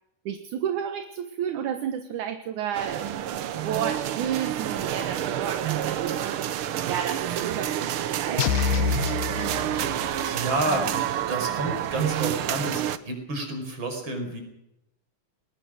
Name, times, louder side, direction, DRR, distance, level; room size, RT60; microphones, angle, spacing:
voice 1, 0.3-3.2 3.6-6.3 6.9-8.5, right 9 dB, 70° right, 8 dB, 2.6 m, -31 dB
sound 1, 2.7-13.0, right 11 dB, 90° right, 1.2 m, -29 dB
sound 2, 8.4-10.3, left 7 dB, 75° left, 2.4 m, -27 dB
voice 2, 9.1-9.4 10.2-14.4, right 2 dB, 35° right, 5 dB, 5.7 m, -30 dB
21.0 x 21.0 x 6.5 m, 0.83 s
omnidirectional pair, 3.7 m